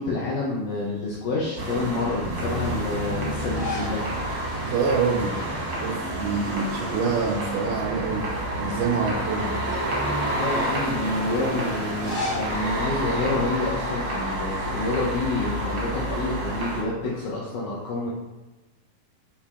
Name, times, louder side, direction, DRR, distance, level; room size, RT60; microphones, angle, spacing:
voice 1, 0.0-4.1 10.3-18.1, left 2 dB, 85° left, -5 dB, 1.7 m, -28 dB
sound 1, 1.6-16.8, right 1 dB, 75° right, 1.2 m, -29 dB
sound 2, 3.5-4.0 4.4-4.5 5.8-6.3 6.6-7.8 8.3-8.4 9.3-10.5 11.8-14.0, left 2 dB, 60° left, 0.8 m, -36 dB
voice 2, 4.6-5.5 5.8-9.6, right 5 dB, 90° right, -2 dB, 1.8 m, -26 dB
6.7 x 2.8 x 2.3 m, 1.1 s
omnidirectional pair, 4.2 m